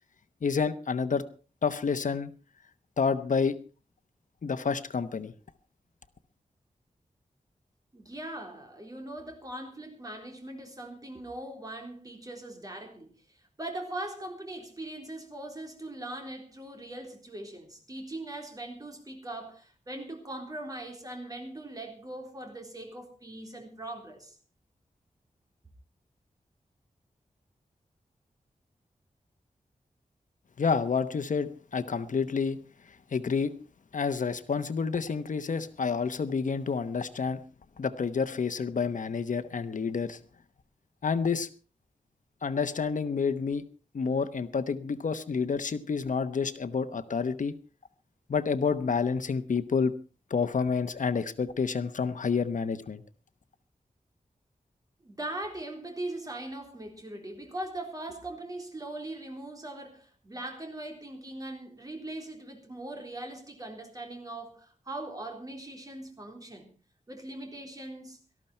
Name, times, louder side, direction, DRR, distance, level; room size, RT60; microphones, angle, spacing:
voice 1, 0.4-1.2 1.6-2.3 3.0-3.6 4.4-5.3 30.6-32.6 33.1-33.5 33.9-37.4 37.8-40.2 41.0-41.5 42.4-43.6 43.9-47.5 48.3-49.9 50.3-53.0, left 5 dB, 65° left, 1.0 m, -29 dB
voice 2, 7.9-24.4 55.0-66.7 67.1-68.2, right 1 dB, 25° right, 3.8 m, -40 dB
18.5 x 13.5 x 4.4 m
wide cardioid pair, 125°, 14 cm